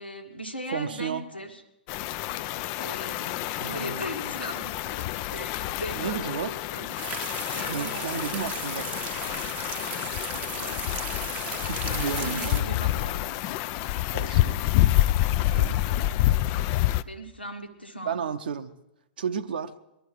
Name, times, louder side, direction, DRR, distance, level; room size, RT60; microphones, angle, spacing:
voice 1, 0.0-1.6 2.8-6.9 7.5-8.4 10.3-10.9 11.9-13.4 17.0-18.2, equal, 90° left, 3 dB, 1.7 m, -39 dB
voice 2, 0.7-1.2 3.6-4.3 5.9-6.5 7.7-8.9 11.5-12.7 14.1-14.6 15.4-15.8 18.1-18.7 19.2-19.7, right 7 dB, 65° right, 8 dB, 0.7 m, -33 dB
sound 1, 1.9-17.0, left 14 dB, 40° left, 0.4 m, -28 dB
sound 2, 7.0-12.6, right 10 dB, 30° right, 0.7 m, -37 dB
20.0 x 12.0 x 4.6 m, 0.92 s
figure-of-eight pair, 105°, 5 cm